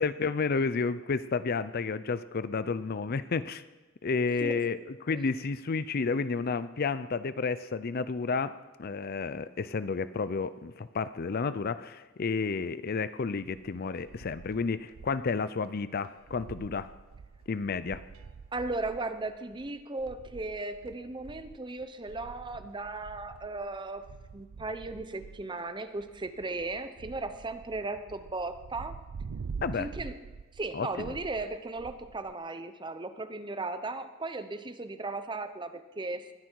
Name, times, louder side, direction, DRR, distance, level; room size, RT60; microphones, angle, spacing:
voice 1, 0.0-3.6 4.0-16.9 17.5-18.0 29.6-29.9 30.7-31.2, left 4 dB, 45° left, 15 dB, 0.5 m, -31 dB
sound 1, 13.3-15.3 15.6-15.7 16.0-32.3, right 5 dB, 80° right, 0.5 m, -46 dB
voice 2, 18.5-24.0 24.3-29.0 29.8-30.2 30.5-36.3, right 2 dB, 20° right, 10 dB, 0.8 m, -36 dB
21.0 x 10.0 x 4.6 m, 1.2 s
head